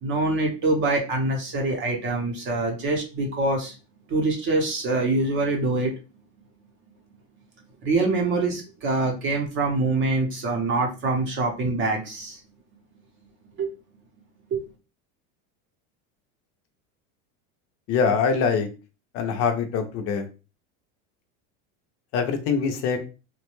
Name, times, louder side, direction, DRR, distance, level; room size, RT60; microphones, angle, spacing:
voice 1, 0.0-3.8 4.1-5.9 7.8-12.4 13.6-13.7 14.5-14.6, right 2 dB, 30° right, 1 dB, 0.7 m, -24 dB
voice 2, 17.9-18.7 19.1-20.3 22.1-23.0, left 5 dB, 40° left, 6 dB, 0.5 m, -23 dB
3.1 x 2.2 x 3.0 m, 0.31 s
cardioid pair, 165°, 37 cm